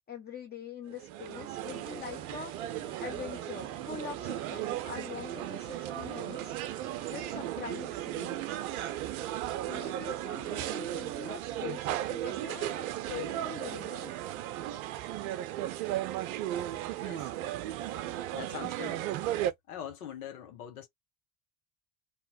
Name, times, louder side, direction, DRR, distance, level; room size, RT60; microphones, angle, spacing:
voice 1, 0.1-2.7 3.0-6.5 6.9-8.4 9.7-14.2, left 7 dB, 20° left, 0.6 m, -44 dB
sound 1, 0.9-19.5, right 13 dB, 70° right, 0.6 m, -36 dB
sound 2, 1.8-7.5, right 4 dB, 10° right, 0.8 m, -51 dB
voice 2, 17.0-17.3 18.3-19.1 19.7-20.9, left 9 dB, 80° left, 0.8 m, -42 dB
2.8 x 2.0 x 3.8 m
hypercardioid pair, 65°, 44 cm